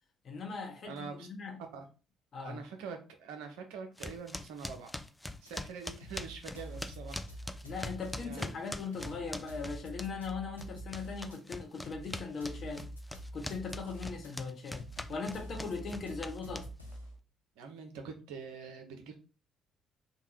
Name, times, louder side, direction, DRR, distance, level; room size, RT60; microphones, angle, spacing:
voice 1, 0.2-1.6 2.3-2.6 7.6-12.9 13.3-16.7, left 4 dB, 45° left, 0.8 m, -39 dB
voice 2, 0.8-1.3 1.7-1.9 2.4-4.9 5.4-7.2 8.2-8.5 17.6-19.1, right 5 dB, 65° right, 0.5 m, -44 dB
sound 1, 4.0-10.3 10.6-17.0, left 1 dB, 10° left, 0.3 m, -42 dB
sound 2, 5.5-5.6 6.0-8.5 8.9-11.4 11.9-14.3 14.8-17.2, right 1 dB, 90° left, 0.4 m, -46 dB
2.7 x 2.2 x 3.1 m
figure-of-eight pair, 45°, 0 cm